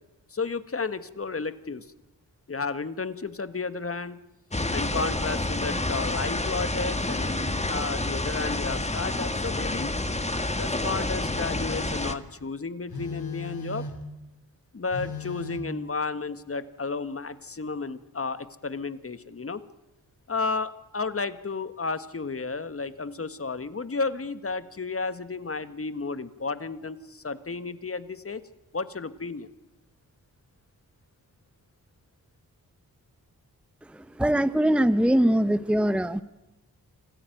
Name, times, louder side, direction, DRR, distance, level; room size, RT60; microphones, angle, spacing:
voice 1, 0.3-1.9 2.5-4.2 4.7-9.9 10.6-13.9 14.7-19.6 20.3-28.4 28.7-29.5, left 4 dB, 35° left, 13 dB, 1.6 m, -32 dB
sound 1, 4.5-12.1, left 2 dB, 15° left, 1.8 m, -28 dB
Telephone, 9.7-10.0 10.9-12.0 12.9-14.1 14.9-15.6, left 4 dB, 75° left, 3.5 m, -38 dB
voice 2, 33.9-36.2, right 1 dB, 5° right, 13 dB, 0.9 m, -22 dB
27.0 x 14.0 x 9.2 m, 1.0 s
cardioid pair, 45°, 37 cm